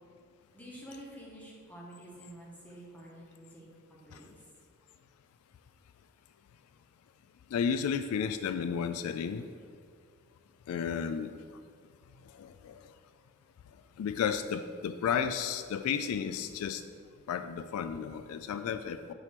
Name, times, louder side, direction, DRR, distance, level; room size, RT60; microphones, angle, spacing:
voice 1, 0.5-4.3, right 1 dB, 10° left, -4 dB, 1.2 m, -49 dB
voice 2, 7.5-9.4 10.7-11.3 12.4-12.8 14.0-16.8 17.3-19.1, left 7 dB, 75° left, 13 dB, 0.3 m, -32 dB
7.6 x 3.0 x 5.8 m, 2.1 s
head